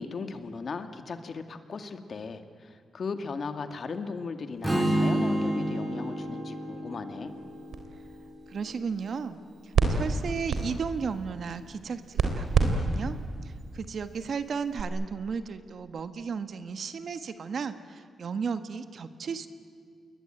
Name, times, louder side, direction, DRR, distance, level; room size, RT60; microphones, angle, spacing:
voice 1, 0.0-7.4, left 4 dB, 50° left, 8 dB, 2.0 m, -37 dB
Strum, 4.6-8.8, right 1 dB, 15° right, 4.0 m, -30 dB
sound 1, 7.3-14.8, right 4 dB, 75° right, 3.9 m, -31 dB
voice 2, 8.5-13.2 13.4-19.5, right 5 dB, 60° right, 10 dB, 1.6 m, -34 dB
28.5 x 22.0 x 9.1 m, 2.3 s
wide cardioid pair, 120°, 0 cm